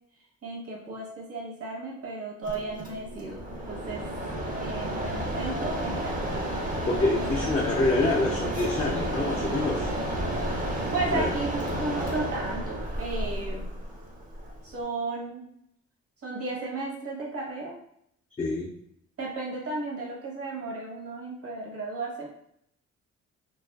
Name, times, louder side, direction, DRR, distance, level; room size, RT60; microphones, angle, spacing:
voice 1, 0.4-3.4 3.7-4.1 4.6-6.1 7.1-7.2 10.9-13.7 14.6-15.4 16.2-17.8 19.2-22.4, right 3 dB, 50° right, -2 dB, 1.0 m, -34 dB
Mechanisms, 2.4-14.8, right 1 dB, 30° right, 0.6 m, -31 dB
voice 2, 6.9-9.9 11.1-11.3 18.4-18.7, left 2 dB, 20° left, -3 dB, 0.4 m, -26 dB
2.4 x 2.3 x 2.2 m, 0.71 s
cardioid pair, 90°, 30 cm